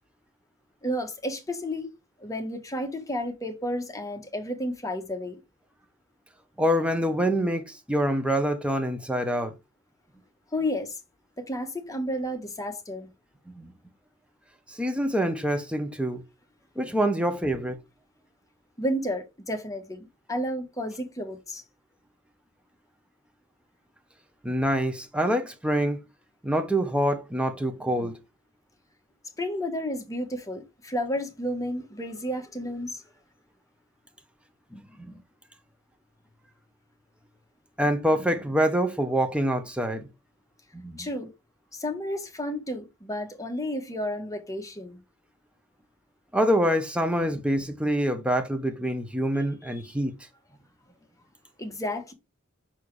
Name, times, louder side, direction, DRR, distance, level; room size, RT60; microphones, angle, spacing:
voice 1, 0.8-1.9 2.2-5.4 10.5-11.0 11.4-13.1 18.8-21.6 29.4-33.0 41.0-41.3 41.7-45.0 49.7-49.8 51.6-52.1, equal, 15° left, 1.6 m, -32 dB
voice 2, 6.6-9.5 13.6-13.7 14.7-16.2 16.8-17.8 24.4-26.0 26.4-28.2 34.7-35.2 37.8-40.1 40.7-41.1 46.3-50.1, equal, 5° right, 1.1 m, -26 dB
5.9 x 4.6 x 4.9 m
head